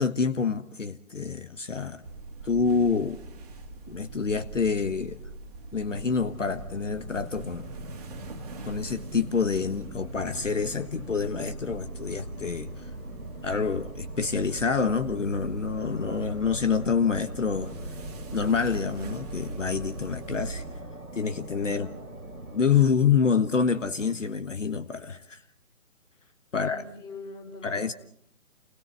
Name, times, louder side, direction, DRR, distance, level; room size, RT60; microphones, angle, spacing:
voice 1, 0.0-2.0 2.4-3.2 3.9-5.2 5.7-7.7 8.7-12.9 13.4-17.7 18.3-20.6 21.1-21.9 22.5-25.4 26.5-26.8 27.6-27.9, left 5 dB, 60° left, 10 dB, 1.5 m, -27 dB
sound 1, 2.0-20.8, right 2 dB, 30° right, 2.2 m, -42 dB
sound 2, 5.9-22.6, right 1 dB, 90° right, 2.7 m, -42 dB
voice 2, 26.5-27.9, left 3 dB, 10° left, 1 dB, 4.8 m, -43 dB
29.5 x 21.0 x 7.6 m, 0.71 s
figure-of-eight pair, 145°, 42 cm